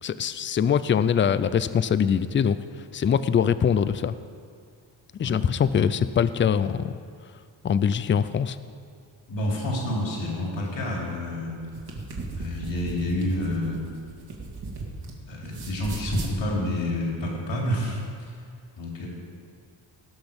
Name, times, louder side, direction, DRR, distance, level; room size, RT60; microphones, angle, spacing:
voice 1, 0.0-2.6 2.9-4.1 5.2-6.9 7.6-8.6, left 7 dB, 30° left, 14 dB, 0.3 m, -23 dB
voice 2, 9.3-11.6 12.4-13.8 15.3-18.0 18.8-19.1, left 1 dB, 65° left, -3 dB, 3.3 m, -28 dB
sound 1, 11.6-15.1 15.4-16.3, right 3 dB, 50° right, 2.2 m, -36 dB
18.0 x 6.1 x 5.2 m, 2.2 s
cardioid pair, 100°, 48 cm